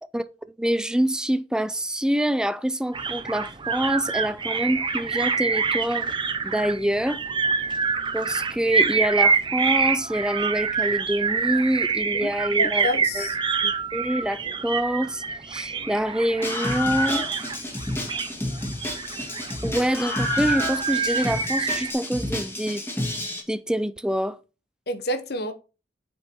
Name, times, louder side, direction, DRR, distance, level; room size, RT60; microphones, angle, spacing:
voice 1, 0.6-6.1 6.4-7.2 8.1-12.9 13.1-13.3 13.6-17.3 19.6-22.8 23.5-24.4, right 1 dB, 5° right, 0.4 m, -26 dB
sound 1, 2.9-21.9, right 5 dB, 30° right, 0.7 m, -26 dB
voice 2, 12.2-13.4 24.9-25.5, left 1 dB, 60° left, 1.0 m, -29 dB
Screaming, 16.4-23.4, left 1 dB, 15° left, 2.1 m, -29 dB
7.9 x 5.4 x 4.5 m
head